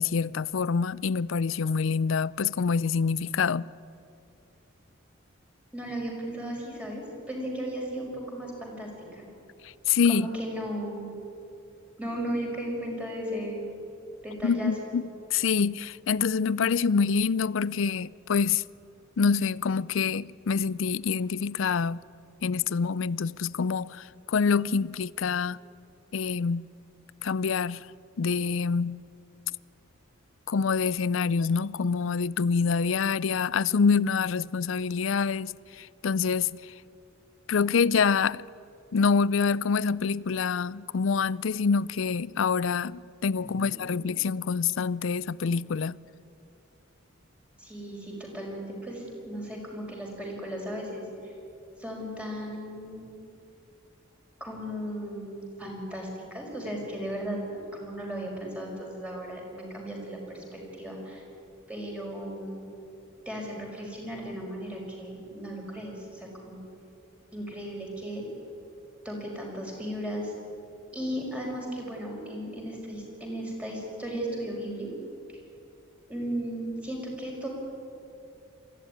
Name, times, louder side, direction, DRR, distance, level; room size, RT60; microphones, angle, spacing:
voice 1, 0.0-3.7 9.6-10.3 14.4-15.0 15.3-18.6 19.2-22.0 22.4-25.6 26.1-26.6 27.2-27.9 28.2-29.0 30.5-36.7 37.5-38.4 38.9-46.0, left 5 dB, 70° left, 0.5 m, -26 dB
voice 2, 5.7-9.2 10.0-11.1 12.0-13.6 14.2-14.9 43.4-44.0 47.6-51.3 51.8-53.1 54.4-61.2 61.7-62.7 63.2-66.6 67.3-68.2 69.0-70.3 70.9-74.9 75.3-75.4 76.1-77.5, equal, 5° right, 5.0 m, -36 dB
22.5 x 15.0 x 9.9 m
head